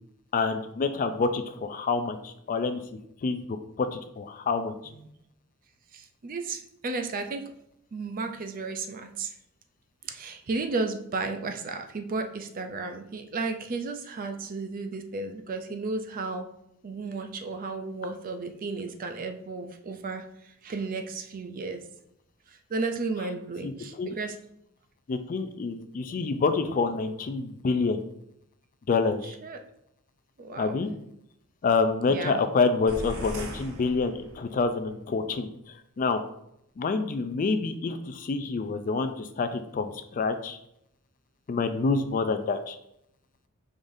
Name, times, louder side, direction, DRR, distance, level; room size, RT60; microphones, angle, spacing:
voice 1, 0.3-2.8 3.2-3.4 3.8-4.7 23.6-23.7 24.0-24.2 25.1-28.0 28.9-29.3 30.6-30.9 31.6-35.5 36.0-36.2 36.8-40.6 41.5-42.8, left 4 dB, 40° left, 9 dB, 0.3 m, -27 dB
voice 2, 5.9-7.5 7.9-9.3 10.0-16.5 16.8-21.8 22.7-24.4 29.2-29.6 30.4-30.8 32.1-32.4, right 3 dB, 40° right, 6 dB, 0.4 m, -33 dB
sound 1, 32.9-34.7, right 1 dB, 65° right, 0.7 m, -39 dB
4.9 x 3.8 x 2.6 m, 0.78 s
head